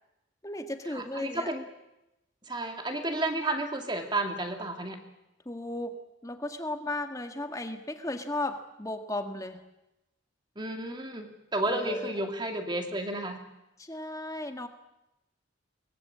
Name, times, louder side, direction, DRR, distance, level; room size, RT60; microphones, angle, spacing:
voice 1, 0.4-1.5 5.4-9.6 11.7-12.3 13.8-14.7, left 1 dB, 15° left, 6 dB, 1.7 m, -35 dB
voice 2, 0.9-1.6 2.5-5.0 10.6-13.4, right 2 dB, 20° right, 4 dB, 2.3 m, -32 dB
23.0 x 20.5 x 8.6 m, 0.92 s
head